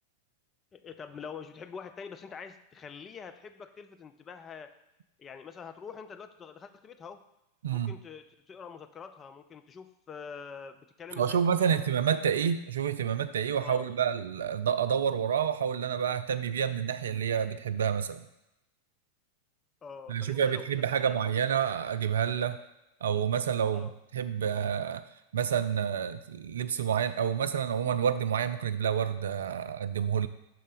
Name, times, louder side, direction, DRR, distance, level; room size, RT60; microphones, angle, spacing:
voice 1, 0.7-4.7 5.2-7.2 7.7-11.8 13.6-13.8 19.8-20.7 21.0-21.3 23.7-23.9, left 6 dB, 25° left, 8 dB, 0.4 m, -45 dB
voice 2, 11.2-18.3 20.1-22.6 23.0-25.0 25.3-30.3, right 8 dB, 65° right, 12 dB, 0.3 m, -29 dB
6.0 x 3.2 x 5.1 m, 0.92 s
figure-of-eight pair, 90°, 0 cm